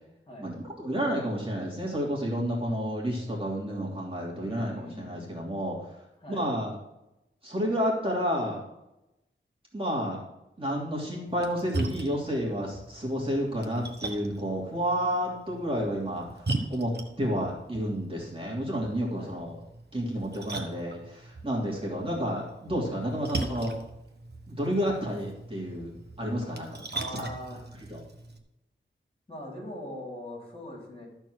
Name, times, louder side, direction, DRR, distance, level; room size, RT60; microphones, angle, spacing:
voice 1, 0.4-5.9 6.3-6.7 7.4-8.6 9.7-10.2 10.6-16.9 17.2-19.6 19.9-23.8 24.5-27.3 27.9-28.0, equal, 25° right, -4 dB, 3.0 m, -30 dB
voice 2, 4.4-5.3 6.2-6.5 19.2-19.3 25.1-25.2 26.9-27.6 29.3-31.1, left 1 dB, 30° left, -3 dB, 3.8 m, -41 dB
Splash splatter, 11.3-28.4, right 2 dB, 55° right, 1.3 m, -39 dB
13.5 x 4.6 x 6.4 m, 0.89 s
wide cardioid pair, 75°, 20 cm